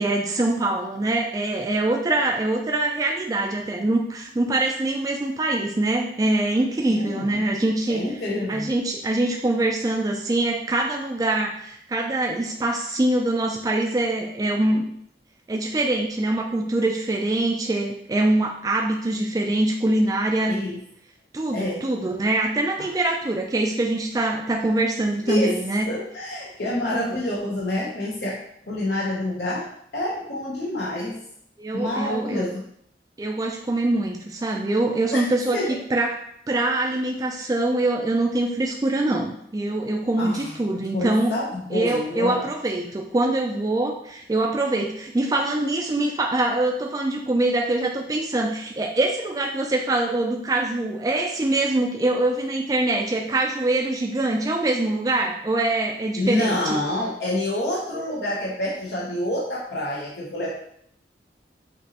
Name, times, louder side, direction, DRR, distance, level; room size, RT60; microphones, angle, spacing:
voice 1, 0.0-8.0 8.5-14.9 15.5-20.6 21.3-25.9 26.9-27.2 31.6-32.4 33.2-35.6 35.9-36.1 36.5-41.4 41.7-56.8, right 2 dB, 20° right, 1 dB, 0.3 m, -24 dB
voice 2, 6.9-7.4 7.9-8.7 20.5-20.8 21.5-21.9 22.8-22.9 25.3-25.6 25.9-29.7 29.9-31.2 31.7-32.6 35.1-35.8 40.2-42.5 56.1-60.5, left 1 dB, 70° left, -5 dB, 0.8 m, -28 dB
5.2 x 2.9 x 2.8 m, 0.70 s
head